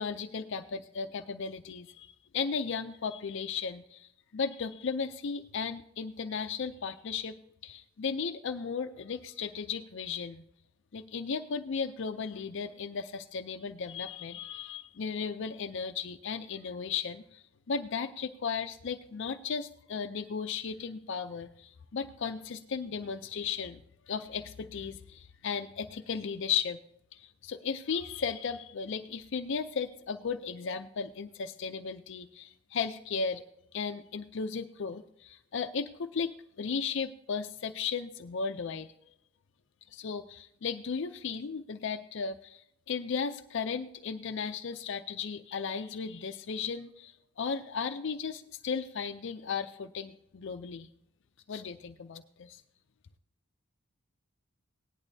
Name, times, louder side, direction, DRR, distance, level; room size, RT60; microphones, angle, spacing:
voice 1, 0.0-7.3 7.6-10.4 10.9-23.8 24.1-26.8 27.1-33.4 33.7-38.9 39.9-50.9 51.5-52.6, left 5 dB, 60° left, 7 dB, 0.5 m, -35 dB
18.0 x 10.5 x 2.7 m, 0.75 s
head